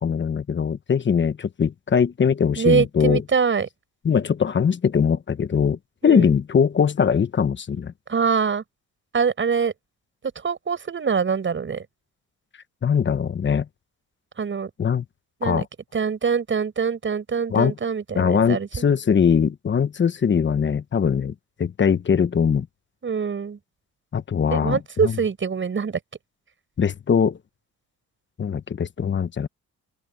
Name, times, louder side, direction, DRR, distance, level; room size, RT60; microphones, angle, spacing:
voice 1, 0.0-3.2 4.0-7.9 12.8-13.7 14.8-15.0 15.4-15.6 17.5-17.7 18.2-21.3 21.6-22.7 24.1-25.1 26.8-27.4 28.4-29.5, left 7 dB, 40° left, 1.1 m, -21 dB
voice 2, 2.6-3.7 6.0-6.3 8.1-8.6 9.1-9.7 10.4-11.9 14.4-14.7 15.4-15.7 15.9-18.9 23.0-23.6 24.5-26.0, right 6 dB, 40° right, 7.3 m, -24 dB
open air
cardioid pair, 90°, 30 cm